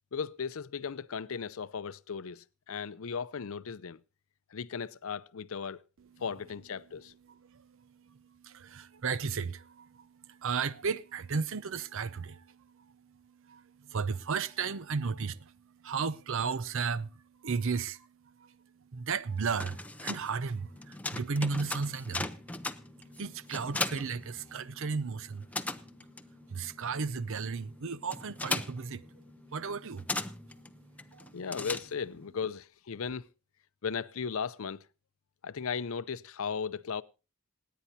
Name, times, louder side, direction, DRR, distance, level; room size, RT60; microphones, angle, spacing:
voice 1, 0.1-4.0 4.5-5.8 6.2-7.1 31.3-33.3 33.8-34.8 35.4-37.0, left 6 dB, 65° left, 0.5 m, -36 dB
voice 2, 7.3-25.5 26.5-29.1 29.5-30.1 30.6-31.4, right 5 dB, 60° right, 0.6 m, -35 dB
sound 1, 19.4-25.0 25.2-32.3, left 2 dB, 5° left, 0.6 m, -38 dB
Organ, 20.4-31.1, left 3 dB, 20° right, 1.9 m, -58 dB
27.0 x 9.4 x 2.7 m
head